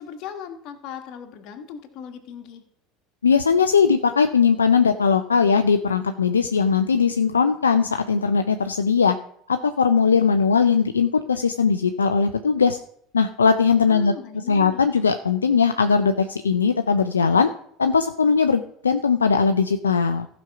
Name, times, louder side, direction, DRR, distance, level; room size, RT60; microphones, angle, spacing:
voice 1, 0.0-2.6 13.9-14.9, left 7 dB, 55° left, 5 dB, 1.4 m, -38 dB
voice 2, 3.2-9.2 9.5-12.8 13.1-14.1 14.5-17.5 17.8-20.3, left 5 dB, 85° left, 8 dB, 0.4 m, -19 dB
14.5 x 5.2 x 5.8 m, 0.67 s
hypercardioid pair, 75°, 0 cm